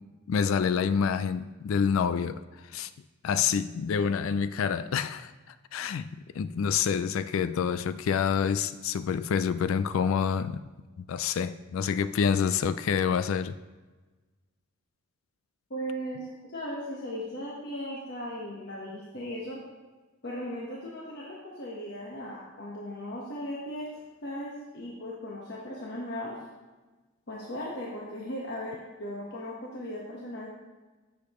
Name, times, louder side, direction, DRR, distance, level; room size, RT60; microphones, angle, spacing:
voice 1, 0.3-2.4 2.7-2.9 3.2-5.3 5.7-6.1 6.3-10.6 11.1-13.6, left 7 dB, 70° left, 0.3 m, -27 dB
voice 2, 15.7-19.6 20.2-26.4 27.3-30.5, equal, 50° left, 1.3 m, -37 dB
15.0 x 6.8 x 3.1 m
head